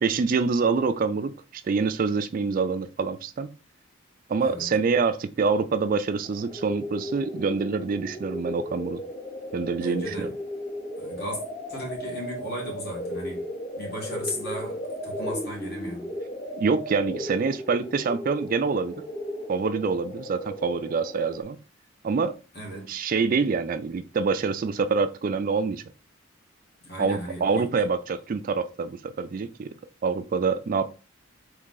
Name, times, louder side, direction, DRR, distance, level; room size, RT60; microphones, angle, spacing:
voice 1, 0.0-3.5 4.3-9.0 9.5-10.3 16.6-18.9 19.5-21.6 22.0-22.4 22.9-25.8 27.0-29.7 30.0-30.9, right 4 dB, 45° right, 0.3 m, -26 dB
sound 1, 6.2-21.4, equal, 30° left, 1.2 m, -35 dB
voice 2, 9.8-10.4 11.0-11.4 11.7-13.5 13.8-16.1 22.5-22.9 26.8-27.9, equal, 50° left, 1.9 m, -36 dB
3.7 x 3.2 x 3.8 m
head